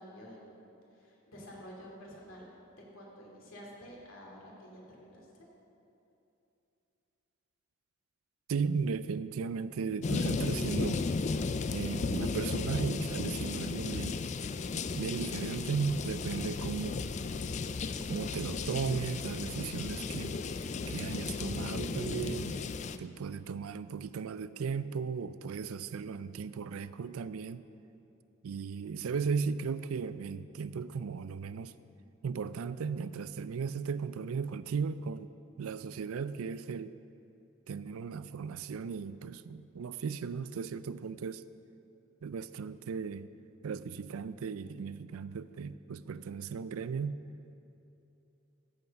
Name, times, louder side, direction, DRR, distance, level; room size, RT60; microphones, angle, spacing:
voice 1, 0.0-2.5 2.9-5.5, equal, 65° left, -3 dB, 2.6 m, -50 dB
voice 2, 8.5-11.0 11.7-14.2 15.0-17.0 18.1-20.4 20.9-22.6 23.0-27.6 28.4-31.7 32.2-35.3 35.6-36.9 37.7-41.4 42.2-43.3 43.6-47.2, right 5 dB, 80° right, 14 dB, 0.4 m, -36 dB
sound 1, 10.0-23.0, left 4 dB, 35° left, 0.3 m, -34 dB
14.0 x 8.0 x 5.2 m, 2.9 s
head